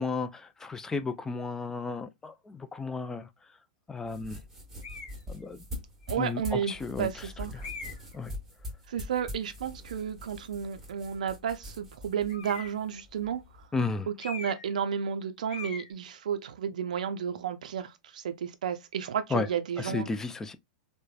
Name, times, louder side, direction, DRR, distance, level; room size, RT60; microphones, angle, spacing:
voice 1, 0.0-3.3 3.9-4.4 5.3-5.6 6.2-7.3 7.5-7.7 8.1-8.3 13.7-14.1 19.3-19.5 19.8-20.6, left 4 dB, 10° left, 0.3 m, -33 dB
sound 1, 4.0-13.7, left 1 dB, 10° right, 1.2 m, -44 dB
sound 2, 4.8-5.2 6.0-6.1 7.6-8.2 12.3-12.9 14.2-14.8 15.0-15.2 15.5-15.9, left 5 dB, 80° left, 0.8 m, -41 dB
voice 2, 6.1-7.7 8.9-13.4 14.1-20.1, right 8 dB, 80° right, 0.4 m, -32 dB
3.1 x 2.1 x 2.2 m
hypercardioid pair, 115°, 4 cm